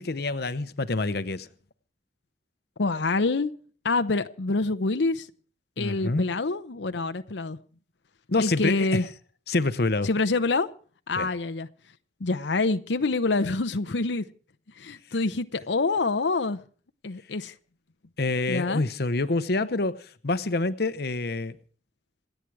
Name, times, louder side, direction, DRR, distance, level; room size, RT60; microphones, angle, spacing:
voice 1, 0.0-1.5 5.8-6.3 8.3-9.0 9.5-10.1 11.2-11.3 18.2-21.5, left 2 dB, 60° left, 0.9 m, -27 dB
voice 2, 2.8-3.5 3.8-5.3 5.8-7.6 8.4-9.1 10.0-10.7 11.1-11.7 12.2-14.2 14.8-16.6 17.0-17.5 18.5-18.8, left 3 dB, 85° left, 0.8 m, -26 dB
27.5 x 9.2 x 4.8 m
head